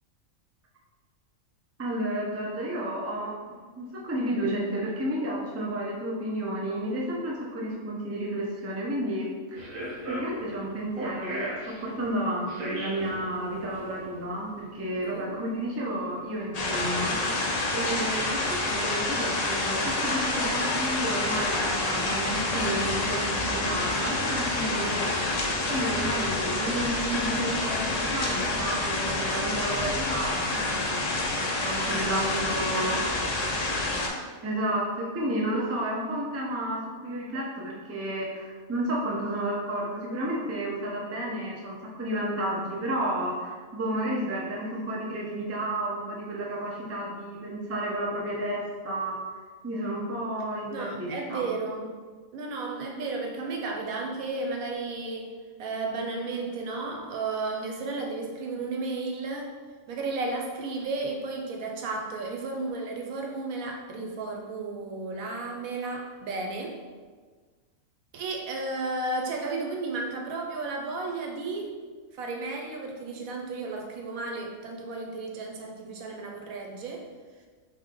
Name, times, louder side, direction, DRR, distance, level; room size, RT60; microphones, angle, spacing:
voice 1, 1.8-3.4 3.8-9.7 10.1-25.3 25.7-31.0 31.3-33.0 34.4-49.2 49.6-51.4, right 1 dB, 20° right, -4 dB, 0.4 m, -31 dB
sound 1, 9.5-22.2, right 1 dB, 75° right, 1.3 m, -41 dB
voice 2, 15.0-15.3 31.9-32.1 32.7-33.0 33.4-34.2 50.7-51.9 52.3-55.3 55.6-59.5 59.9-66.8 68.1-71.8 72.1-77.1, right 3 dB, 90° right, 1 dB, 1.1 m, -33 dB
sound 2, 16.5-34.1, left 2 dB, 70° left, 0.3 m, -28 dB
3.6 x 3.1 x 3.7 m, 1.5 s
omnidirectional pair, 1.5 m